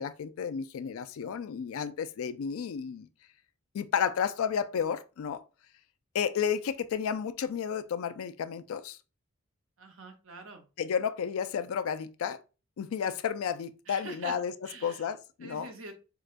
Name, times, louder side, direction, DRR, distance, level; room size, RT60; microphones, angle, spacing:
voice 1, 0.0-3.1 3.7-5.4 6.1-9.0 10.8-12.4 12.8-14.5 14.8-15.7, left 7 dB, 75° left, 0.3 m, -32 dB
voice 2, 9.8-10.6 13.9-14.4 14.6-15.1 15.4-15.9, right 3 dB, 70° right, 0.8 m, -45 dB
4.7 x 2.2 x 2.4 m
head